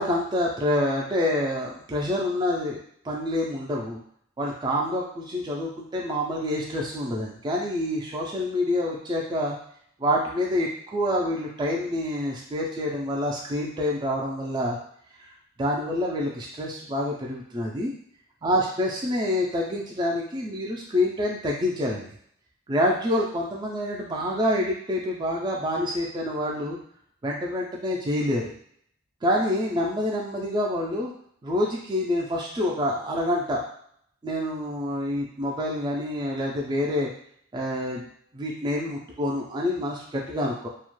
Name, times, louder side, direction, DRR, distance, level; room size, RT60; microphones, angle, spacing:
voice 1, 0.0-2.8 3.0-4.0 4.4-9.6 10.0-14.8 15.2-15.3 15.6-17.9 18.4-22.1 22.7-26.8 27.2-28.5 29.2-31.1 31.4-33.6 34.2-37.1 37.5-38.1 38.3-40.7, left 1 dB, 20° right, -2 dB, 0.4 m, -27 dB
2.3 x 2.1 x 3.0 m, 0.64 s
head